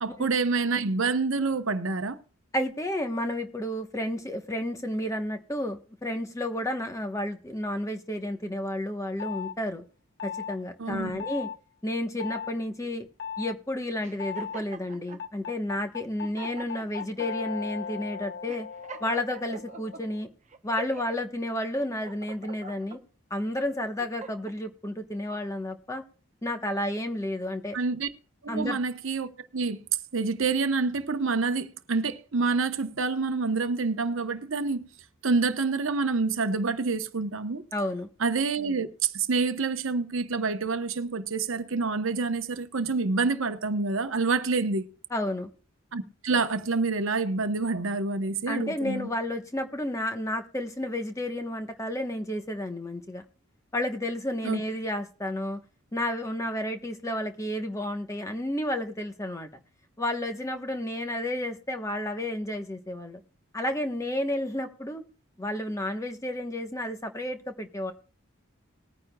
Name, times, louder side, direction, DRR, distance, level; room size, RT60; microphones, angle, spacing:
voice 1, 0.0-2.2 10.8-11.2 27.7-28.1 28.4-29.8 30.1-34.8 35.2-37.6 38.2-44.9 45.9-49.1 54.4-54.6, right 4 dB, 70° right, 0.9 m, -27 dB
voice 2, 2.5-9.8 10.2-11.5 11.8-13.1 13.4-18.7 19.0-20.3 20.6-23.0 23.3-26.0 26.4-27.8 28.5-28.8 37.7-38.1 45.1-45.5 48.5-53.2 53.7-55.6 55.9-59.5 60.0-63.2 63.5-65.0 65.4-67.9, left 1 dB, 15° left, 1.0 m, -31 dB
sound 1, 9.2-9.5 10.2-10.6 11.2-11.6 12.2-12.5 13.2-13.5 14.2-14.6 15.2-20.3, left 7 dB, 50° left, 1.0 m, -37 dB
sound 2, 14.0-15.2 15.9-16.0 16.2-17.3 17.8-18.0 18.5-20.0 20.5-21.2 21.7-23.0 23.6-24.6, right 3 dB, 35° right, 0.9 m, -43 dB
20.0 x 9.5 x 2.3 m
head